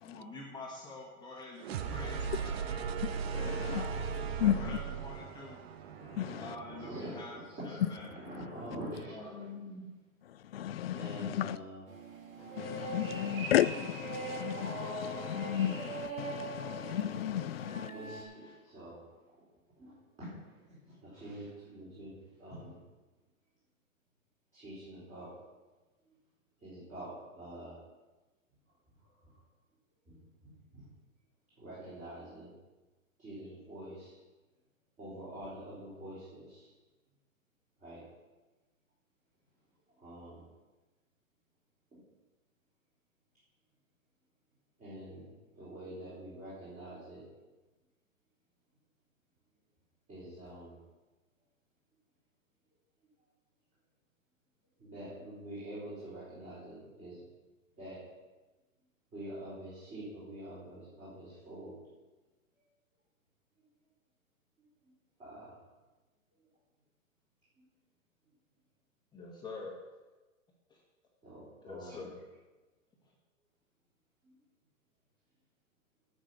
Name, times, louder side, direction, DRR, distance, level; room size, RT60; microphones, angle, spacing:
voice 1, 0.0-2.9 3.7-5.6 6.4-7.3 7.6-8.2 9.1-9.9 69.1-69.7 70.7-70.8 71.6-72.2, left 3 dB, 10° left, -3 dB, 1.8 m, -46 dB
sound 1, 1.6-7.4, right 6 dB, 50° right, 1.0 m, -38 dB
voice 2, 3.3-3.7 4.4-4.8 6.2-6.5 10.5-11.6 12.6-17.9, left 11 dB, 50° left, 16 dB, 0.5 m, -33 dB
voice 3, 6.8-7.1 7.5-9.4 10.9-11.8 17.9-19.0 19.7-22.1 22.4-22.8 24.5-25.3 26.6-27.8 30.0-30.2 30.4-30.9 31.6-32.5 33.2-34.2 35.0-36.7 37.8-38.0 40.0-40.4 41.9-42.0 44.8-47.2 50.1-50.7 54.8-57.2 57.8-58.0 59.1-61.8 65.2-65.6 71.2-72.1 74.2-74.3, right 1 dB, 20° right, -11 dB, 4.7 m, -46 dB
sound 2, 11.9-18.2, right 3 dB, 75° right, 2.9 m, -42 dB
10.0 x 6.2 x 8.6 m, 1.2 s
hypercardioid pair, 150°, 41 cm